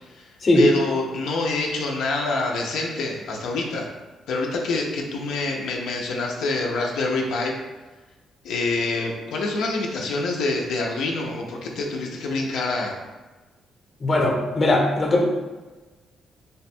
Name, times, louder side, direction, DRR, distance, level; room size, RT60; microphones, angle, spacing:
voice 1, 0.5-3.9 4.3-7.5 8.4-13.0, left 3 dB, 80° left, -1 dB, 0.5 m, -26 dB
voice 2, 14.0-15.2, left 1 dB, 30° left, 0 dB, 0.7 m, -19 dB
3.4 x 2.2 x 4.2 m, 1.2 s
cardioid pair, 125°, 0 cm